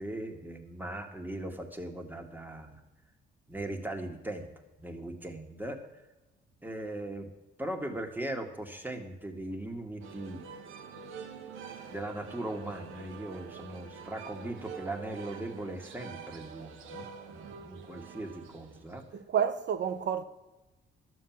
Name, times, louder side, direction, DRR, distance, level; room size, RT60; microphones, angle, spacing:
voice 1, 0.0-2.8 3.5-4.5 4.8-5.8 6.6-7.3 7.6-10.4 11.9-19.0, right 1 dB, 10° right, 2.0 m, -39 dB
sound 1, 10.0-19.2, right 5 dB, 85° right, 1.3 m, -46 dB
voice 2, 19.1-20.2, right 8 dB, 65° right, 1.0 m, -29 dB
12.0 x 7.7 x 7.4 m
cardioid pair, 90°, 20 cm